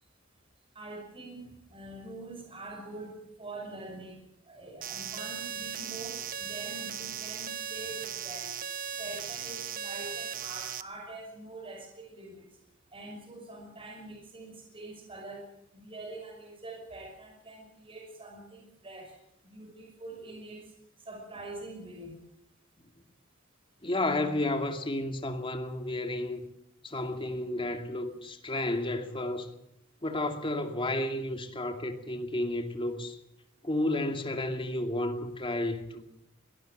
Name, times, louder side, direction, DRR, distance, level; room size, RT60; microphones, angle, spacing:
voice 1, 0.7-8.5 9.0-12.5 12.9-15.5 15.7-19.1 19.4-20.6 21.1-22.2, right 2 dB, 25° right, 6.0 m, -44 dB
sound 1, 4.8-10.8, right 8 dB, 45° right, 1.0 m, -37 dB
voice 2, 23.8-26.4 26.8-29.5 30.0-33.2 33.6-36.0, left 1 dB, 25° left, 2.4 m, -32 dB
22.5 x 19.0 x 6.7 m
head